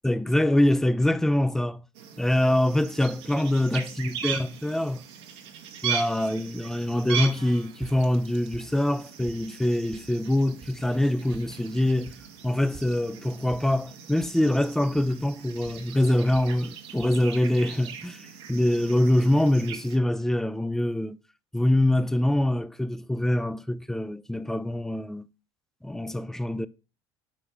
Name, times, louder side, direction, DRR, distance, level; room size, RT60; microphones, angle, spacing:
voice 1, 0.0-1.8 2.2-5.0 5.8-12.1 12.4-18.2 18.5-21.2 21.5-25.3 25.8-26.7, left 1 dB, 5° left, 0.4 m, -24 dB
sound 1, 1.9-20.0, right 7 dB, 70° right, 1.0 m, -39 dB
sound 2, 7.4-8.3 8.5-9.6 9.9-10.4 10.6-10.8 11.1-12.4 12.7-15.4 15.7-16.6 16.9-17.2, right 6 dB, 45° right, 1.1 m, -48 dB
5.0 x 4.4 x 5.4 m
hypercardioid pair, 65°, 14 cm